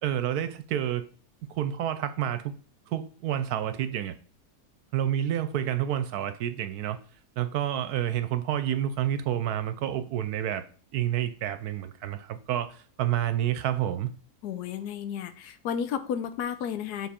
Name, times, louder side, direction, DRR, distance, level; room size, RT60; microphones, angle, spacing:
voice 1, 0.0-1.1 1.5-2.5 2.9-4.1 4.9-7.0 7.4-10.6 10.9-14.1, right 11 dB, 75° right, 1.0 m, -29 dB
voice 2, 14.4-17.1, left 8 dB, 75° left, 1.2 m, -32 dB
7.2 x 3.8 x 4.3 m
omnidirectional pair, 1.7 m